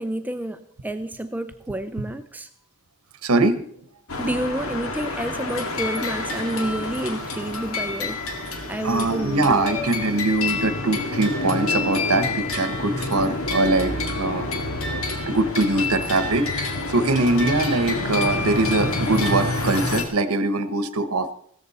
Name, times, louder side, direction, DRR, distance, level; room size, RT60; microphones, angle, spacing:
voice 1, 0.0-2.5 4.2-8.2 8.7-9.7, right 1 dB, 10° right, 10 dB, 0.5 m, -29 dB
voice 2, 3.2-3.7 8.8-14.5 15.3-21.3, right 2 dB, 85° right, 11 dB, 1.1 m, -22 dB
sound 1, 4.1-20.0, left 2 dB, 75° left, 2.0 m, -28 dB
16.0 x 13.5 x 4.2 m, 0.63 s
head